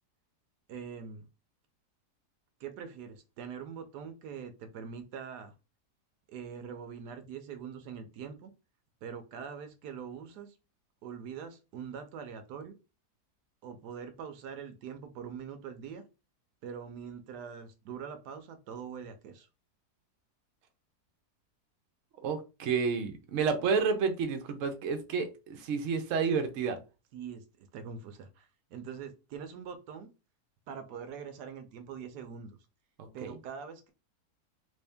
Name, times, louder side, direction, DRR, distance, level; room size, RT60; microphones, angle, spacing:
voice 1, 0.7-1.3 2.6-5.5 6.3-8.5 9.0-10.5 11.0-12.7 13.6-16.0 16.6-19.5 27.1-30.1 30.7-32.6 33.1-33.9, right 7 dB, 85° right, 8 dB, 1.2 m, -43 dB
voice 2, 22.2-26.8 33.0-33.3, right 5 dB, 60° right, 7 dB, 1.0 m, -30 dB
3.4 x 2.7 x 3.4 m, 0.29 s
omnidirectional pair, 1.7 m